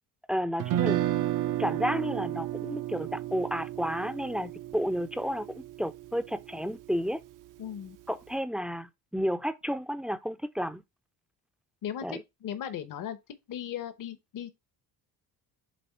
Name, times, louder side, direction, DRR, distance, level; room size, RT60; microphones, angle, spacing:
voice 1, 0.3-1.0 1.6-5.5 5.8-7.2 8.1-10.8 12.0-12.2, equal, ahead, 0.5 m, -31 dB
Guitar, 0.6-6.7, right 13 dB, 55° right, 0.6 m, -32 dB
voice 2, 7.6-8.0 11.8-13.2 13.5-14.5, left 9 dB, 60° left, 1.0 m, -37 dB
7.8 x 3.2 x 4.4 m
cardioid pair, 105°, 38 cm